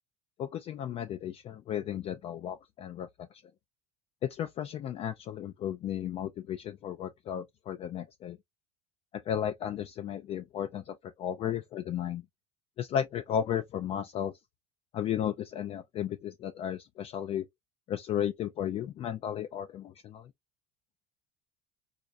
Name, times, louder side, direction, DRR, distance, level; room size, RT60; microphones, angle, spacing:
voice 1, 0.4-3.4 4.2-8.4 9.1-12.2 12.8-14.3 14.9-17.5 17.9-20.3, left 9 dB, 30° left, 0.3 m, -34 dB
4.2 x 2.4 x 2.5 m
cardioid pair, 160°, 19 cm